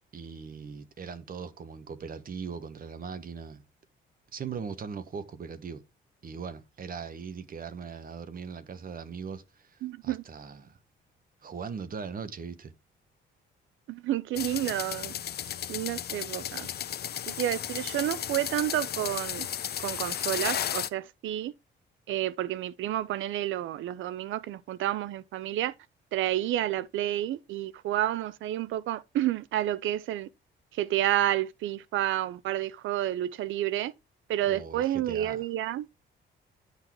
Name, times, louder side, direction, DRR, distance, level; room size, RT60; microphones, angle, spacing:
voice 1, 0.1-3.6 4.3-5.8 6.2-10.8 11.4-12.7 34.4-35.4, right 6 dB, 45° right, 1.2 m, -40 dB
voice 2, 9.8-10.2 13.9-15.1 15.7-16.7 17.3-19.5 19.8-21.5 22.1-25.7 26.1-30.3 30.8-33.9 34.3-35.9, right 13 dB, 80° right, 0.6 m, -30 dB
sound 1, 14.4-20.9, left 10 dB, 55° left, 0.7 m, -34 dB
10.5 x 4.1 x 4.5 m
cardioid pair, 90°, 20 cm